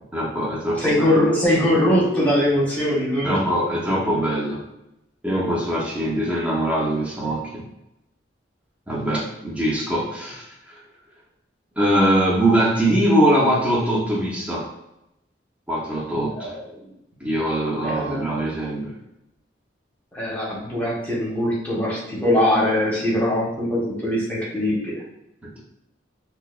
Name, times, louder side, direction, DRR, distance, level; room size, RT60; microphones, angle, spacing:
voice 1, 0.1-1.2 3.2-4.6 5.2-7.6 8.9-10.4 11.8-14.7 15.7-16.5 17.2-18.9, right 1 dB, 5° right, -4 dB, 0.6 m, -22 dB
voice 2, 0.8-3.4 16.3-16.8 17.8-18.5 20.1-24.9, left 1 dB, 10° left, -5 dB, 0.9 m, -22 dB
4.5 x 2.0 x 2.3 m, 0.87 s
head